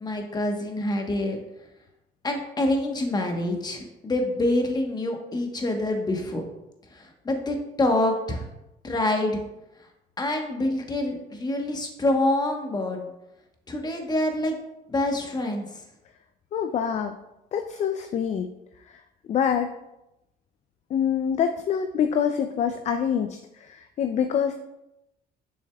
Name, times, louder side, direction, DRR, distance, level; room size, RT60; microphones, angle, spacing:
voice 1, 0.0-1.4 2.2-6.4 6.9-8.5 8.8-9.4 10.2-13.1 13.7-14.5 14.9-15.8, left 1 dB, 25° left, 3 dB, 1.1 m, -26 dB
voice 2, 16.5-17.2 17.5-18.5 18.9-19.0 19.3-19.7 20.9-24.6, left 8 dB, 45° left, 7 dB, 0.4 m, -25 dB
6.9 x 6.2 x 2.3 m, 0.91 s
cardioid pair, 110°, 17 cm